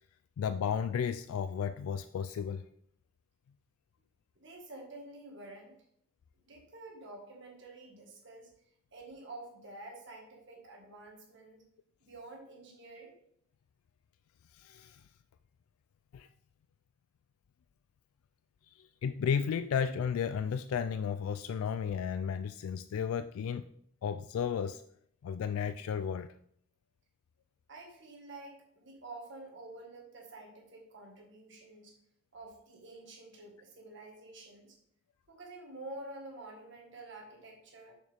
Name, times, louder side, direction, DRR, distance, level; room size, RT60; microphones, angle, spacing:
voice 1, 0.4-2.7 14.5-15.0 16.1-16.3 18.7-23.7 24.0-24.8 25.2-26.3, left 7 dB, 85° left, 12 dB, 0.3 m, -33 dB
voice 2, 4.4-5.7 6.4-8.5 8.9-11.6 12.0-13.1 27.7-31.9 32.3-34.8 35.3-38.0, right 2 dB, 60° right, 0 dB, 1.8 m, -49 dB
6.4 x 6.4 x 3.5 m, 0.67 s
head